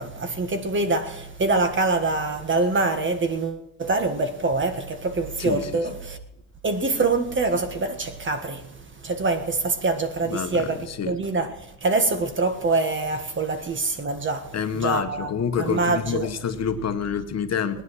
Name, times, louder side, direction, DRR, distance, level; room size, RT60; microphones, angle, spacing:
voice 1, 0.0-6.2 6.6-8.6 9.0-11.5 11.8-15.3 15.6-16.3, right 3 dB, 35° right, 1.6 m, -25 dB
voice 2, 5.4-5.9 10.2-11.2 14.5-17.8, left 7 dB, 50° left, 1.1 m, -27 dB
19.5 x 9.8 x 6.3 m
cardioid pair, 135°, 34 cm